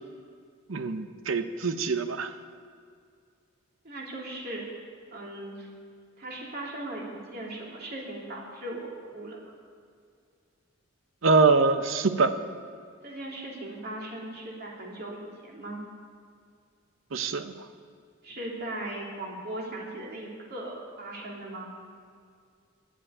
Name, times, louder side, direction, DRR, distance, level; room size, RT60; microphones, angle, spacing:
voice 1, 0.7-2.3 11.2-12.3 17.1-17.5, right 4 dB, 75° right, 10 dB, 0.8 m, -24 dB
voice 2, 3.8-4.7 5.1-5.7 6.2-9.4 13.0-15.8 18.2-21.7, right 1 dB, 50° right, -3 dB, 2.9 m, -38 dB
11.0 x 8.2 x 9.6 m, 2.2 s
head